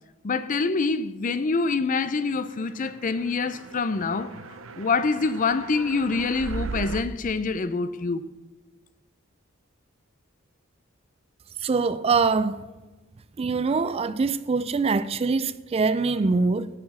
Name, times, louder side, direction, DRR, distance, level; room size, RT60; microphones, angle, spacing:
voice 1, 0.2-4.4 4.8-8.2, left 4 dB, 40° left, 0.5 m, -26 dB
sound 1, 2.6-7.0, right 4 dB, 80° right, 0.7 m, -38 dB
voice 2, 11.6-12.6 13.4-16.7, right 4 dB, 30° right, 0.4 m, -23 dB
9.6 x 6.8 x 7.2 m
head